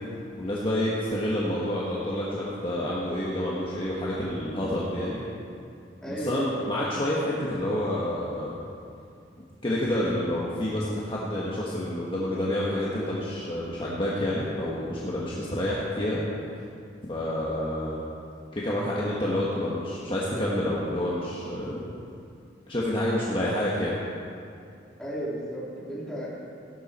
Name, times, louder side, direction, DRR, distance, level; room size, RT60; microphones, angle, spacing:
voice 1, 0.4-5.2 6.1-8.5 9.6-16.2 17.1-18.0 18.5-21.9 22.7-23.9, left 1 dB, 30° left, -6 dB, 1.5 m, -28 dB
voice 2, 6.0-6.7 25.0-26.3, right 1 dB, 5° left, -8 dB, 3.1 m, -34 dB
16.5 x 11.5 x 4.3 m, 2.5 s
head